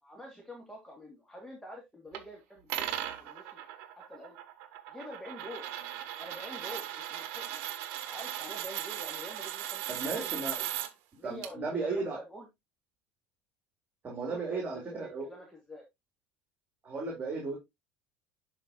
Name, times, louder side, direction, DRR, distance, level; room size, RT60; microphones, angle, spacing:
voice 1, 0.0-2.9 3.2-3.6 4.0-4.4 4.9-5.7 6.2-10.6 11.1-12.5 14.2-15.8, equal, 5° left, 2.7 m, -47 dB
sound 1, 2.1-2.2 2.7-10.9 11.4-11.5, right 12 dB, 60° right, 1.2 m, -38 dB
voice 2, 9.9-10.6 11.2-12.2 14.0-15.3 16.8-17.6, right 3 dB, 30° right, 3.7 m, -35 dB
11.0 x 4.9 x 3.0 m
hypercardioid pair, 70°, 6 cm